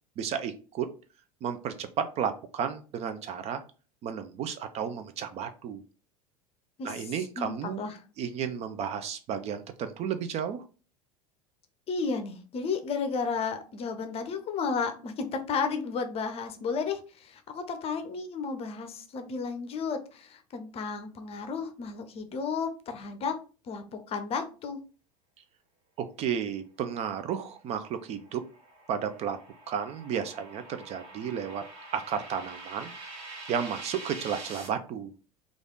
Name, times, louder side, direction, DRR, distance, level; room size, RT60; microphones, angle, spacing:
voice 1, 0.2-0.9 1.4-3.6 4.0-5.8 6.8-7.8 8.2-10.6 26.0-28.4 28.9-29.4 29.7-31.6 31.9-32.9 33.5-35.1, right 8 dB, 35° right, 9 dB, 0.4 m, -33 dB
voice 2, 7.4-8.0 11.9-23.4 23.6-24.8, left 5 dB, 30° left, 7 dB, 0.7 m, -33 dB
sound 1, 27.9-34.7, right 2 dB, 55° right, 1.5 m, -45 dB
3.3 x 2.5 x 3.7 m, 0.36 s
figure-of-eight pair, 80°, 19 cm